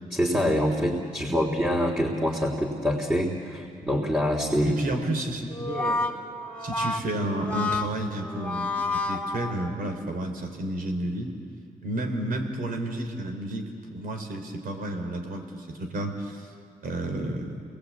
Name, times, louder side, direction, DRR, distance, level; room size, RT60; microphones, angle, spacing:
voice 1, 0.1-4.7, equal, 10° right, -2 dB, 3.4 m, -25 dB
voice 2, 4.6-6.1 6.6-11.3 11.8-16.5 16.8-17.6, right 1 dB, 70° right, 5 dB, 3.8 m, -31 dB
Brass instrument, 5.5-10.0, left 3 dB, 5° left, 2.9 m, -30 dB
29.0 x 20.5 x 8.6 m, 2.3 s
cardioid pair, 75°, 15 cm